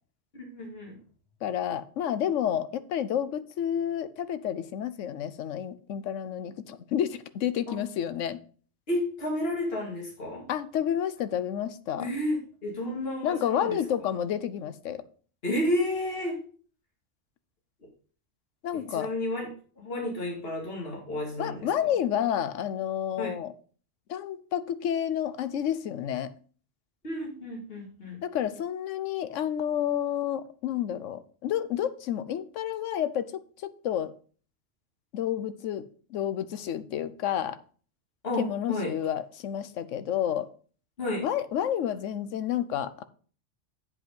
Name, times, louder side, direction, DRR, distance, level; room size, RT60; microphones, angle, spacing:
voice 1, 0.3-1.0 7.7-7.8 8.9-10.4 12.0-13.8 15.4-16.4 18.7-19.5 19.8-21.6 23.2-23.3 27.0-28.2 38.2-38.9 41.0-41.2, left 1 dB, 50° left, -1 dB, 2.5 m, -31 dB
voice 2, 1.4-8.4 10.5-12.1 13.2-15.0 18.6-19.1 21.4-23.5 24.1-26.3 28.2-34.1 35.1-35.8 36.1-37.6 38.4-40.5 41.2-43.0, left 10 dB, 80° left, 13 dB, 1.0 m, -30 dB
8.2 x 5.3 x 5.1 m, 0.42 s
omnidirectional pair, 1.3 m